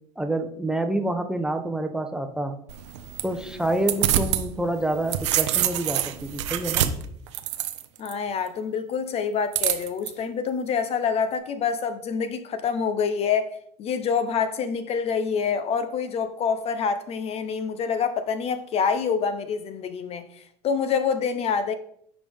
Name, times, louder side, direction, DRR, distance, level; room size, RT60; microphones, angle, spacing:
voice 1, 0.2-2.6 3.2-6.9, right 1 dB, 5° right, 0.8 m, -27 dB
sound 1, 2.7-4.4 4.8-8.1 9.5-10.1, right 12 dB, 85° right, 0.6 m, -26 dB
voice 2, 8.0-21.7, left 6 dB, 45° left, 0.7 m, -26 dB
7.2 x 4.9 x 3.5 m
supercardioid pair, 90°, 15 cm